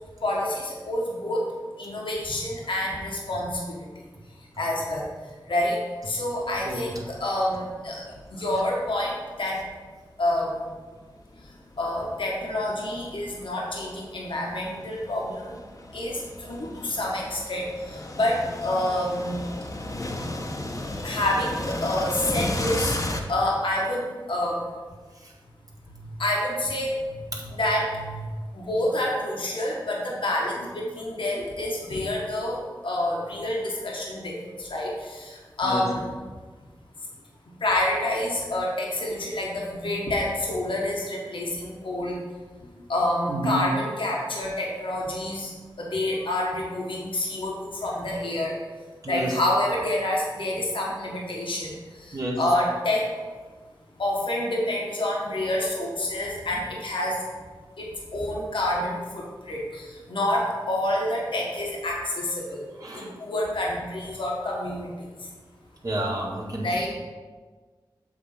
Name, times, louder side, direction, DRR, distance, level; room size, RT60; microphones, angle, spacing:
voice 1, 0.2-1.5 1.8-3.8 4.6-5.1 5.5-5.8 6.0-8.0 8.3-9.6 10.2-10.6 11.8-15.6 15.9-19.4 21.0-23.0 23.3-24.6 26.2-26.9 27.5-28.2 28.5-36.0 37.6-42.2 42.9-45.5 45.8-48.6 49.1-51.8 52.1-53.0 54.0-57.1 57.8-62.7 62.9-64.9 66.6-66.9, left 1 dB, 70° left, -3 dB, 1.3 m, -28 dB
sound 1, 6.4-6.6 7.1-7.2 8.2-9.9 10.5-23.2, left 1 dB, 40° left, 1.0 m, -35 dB
voice 2, 43.3-43.6 49.0-49.3 52.1-52.4 62.8-63.1 65.8-66.7, right 1 dB, 40° right, -3 dB, 2.0 m, -30 dB
7.8 x 3.5 x 5.7 m, 1.4 s
cardioid pair, 45°, 9 cm